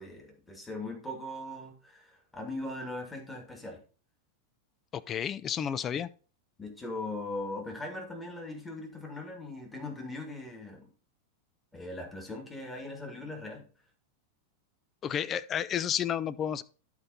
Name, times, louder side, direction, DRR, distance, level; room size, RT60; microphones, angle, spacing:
voice 1, 0.0-3.8 6.6-10.9 11.7-13.7, left 2 dB, 10° left, 2.1 m, -40 dB
voice 2, 4.9-6.1 15.0-16.6, left 9 dB, 25° left, 0.4 m, -31 dB
11.5 x 4.4 x 4.0 m
figure-of-eight pair, 90°, 0 cm